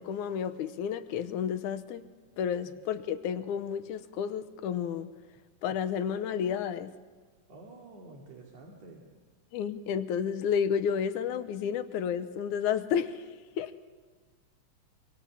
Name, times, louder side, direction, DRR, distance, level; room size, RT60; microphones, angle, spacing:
voice 1, 0.0-2.0 2.4-5.1 5.6-6.9 9.5-13.2 13.6-13.7, left 8 dB, 75° left, 11 dB, 2.2 m, -31 dB
voice 2, 7.5-9.1, right 2 dB, 55° right, 0 dB, 3.6 m, -49 dB
25.0 x 24.5 x 7.0 m, 1.4 s
omnidirectional pair, 3.8 m